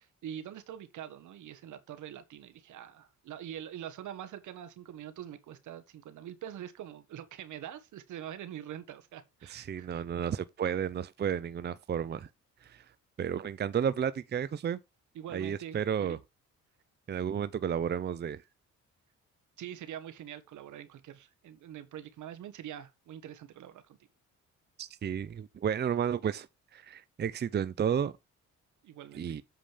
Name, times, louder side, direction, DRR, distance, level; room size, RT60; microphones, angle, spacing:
voice 1, 0.0-10.3 15.1-16.2 19.6-24.0 28.8-29.4, right 10 dB, 75° right, 1.5 m, -44 dB
voice 2, 9.5-12.3 12.6-12.8 13.2-14.8 15.3-16.2 17.1-18.4 24.8-26.5 26.7-28.1 29.2-29.4, right 8 dB, 35° right, 0.6 m, -32 dB
7.7 x 5.0 x 5.1 m
cardioid pair, 90°, 30 cm